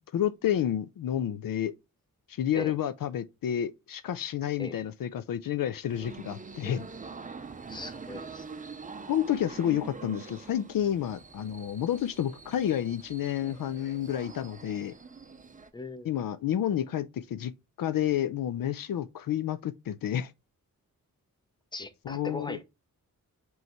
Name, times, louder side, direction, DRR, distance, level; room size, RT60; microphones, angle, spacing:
voice 1, 0.1-1.7 2.3-6.8 9.1-14.9 16.0-17.5 17.8-20.3 22.0-22.6, left 10 dB, 70° left, 0.5 m, -30 dB
sound 1, 5.9-15.7, right 4 dB, 25° right, 0.5 m, -45 dB
voice 2, 7.7-8.4 15.7-16.1 21.7-22.6, left 2 dB, 15° left, 0.7 m, -38 dB
5.4 x 3.2 x 2.9 m
cardioid pair, 80°, 35 cm